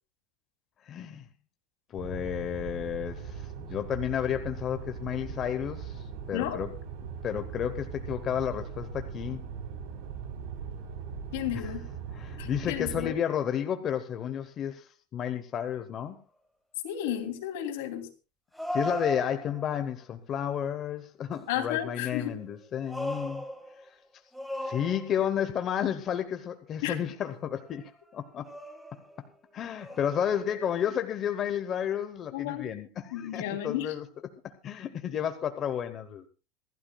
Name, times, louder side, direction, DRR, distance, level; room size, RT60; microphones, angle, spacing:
voice 1, 0.8-1.2 1.9-6.7 7.2-9.4 11.5-11.7 12.1-16.2 18.7-23.4 24.6-28.5 29.5-34.0 34.4-36.3, left 9 dB, 25° left, 8 dB, 0.9 m, -32 dB
sound 1, 2.0-13.1, right 6 dB, 60° right, 3.7 m, -40 dB
voice 2, 11.3-11.8 12.4-13.1 16.8-18.1 21.5-22.3 26.8-27.0 32.3-32.7 33.1-33.9, left 11 dB, 75° left, 5 dB, 2.9 m, -32 dB
sound 2, 16.0-16.1 18.5-19.8 22.4-23.9 24.3-25.4 27.7-27.9 28.4-29.3 29.8-30.8, equal, ahead, 1.6 m, -37 dB
27.0 x 12.0 x 2.3 m, 0.33 s
supercardioid pair, 175°, 0 cm